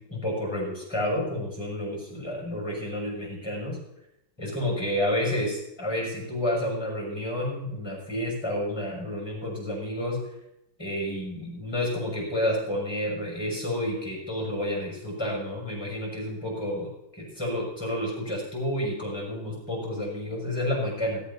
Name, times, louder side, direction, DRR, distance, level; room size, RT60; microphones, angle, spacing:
voice 1, 0.0-3.8 4.4-10.2 10.8-21.2, left 1 dB, 15° left, -2 dB, 6.4 m, -30 dB
17.5 x 14.5 x 2.9 m, 0.82 s
omnidirectional pair, 2.0 m